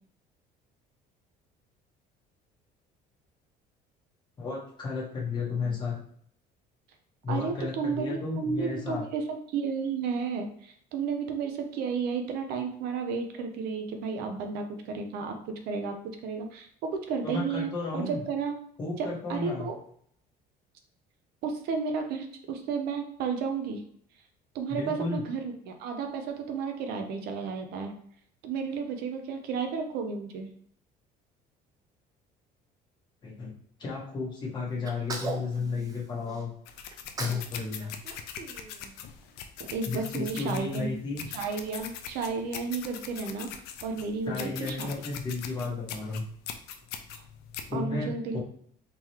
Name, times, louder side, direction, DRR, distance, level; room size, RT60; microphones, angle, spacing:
voice 1, 4.4-6.0 7.2-9.0 17.2-18.2 18.8-19.7 24.7-25.2 33.2-33.5 33.8-36.5 37.2-37.9 39.9-41.2 44.3-46.2 47.7-48.4, left 4 dB, 25° left, -4 dB, 1.3 m, -33 dB
voice 2, 7.3-18.6 19.0-19.8 21.4-23.8 24.5-27.9 28.4-30.5 39.6-40.9 41.3-43.5 43.8-44.9 47.1-47.2 47.7-48.4, right 5 dB, 70° right, 5 dB, 0.7 m, -32 dB
Sneeze, 34.8-36.4 36.9-37.5 37.8-39.2, right 3 dB, 20° right, 0.5 m, -39 dB
sound 1, 36.7-47.7, left 8 dB, 80° left, 0.5 m, -42 dB
3.8 x 3.0 x 3.0 m, 0.63 s
cardioid pair, 155°, 16 cm